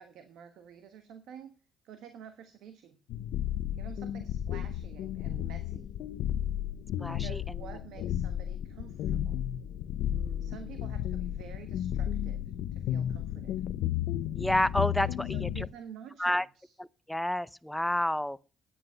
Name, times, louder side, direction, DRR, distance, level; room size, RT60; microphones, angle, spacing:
voice 1, 0.0-1.5 1.8-3.0 3.8-5.9 7.1-9.4 10.4-12.4 12.7-13.6 15.0-16.7, right 8 dB, 80° right, 1.2 m, -49 dB
sound 1, 3.1-15.7, left 11 dB, 85° left, 0.5 m, -33 dB
voice 2, 7.0-7.4 10.1-10.5 14.3-15.7 16.2-16.5 16.8-18.4, left 1 dB, 5° left, 0.6 m, -30 dB
9.9 x 9.6 x 5.6 m
cardioid pair, 75°, 0 cm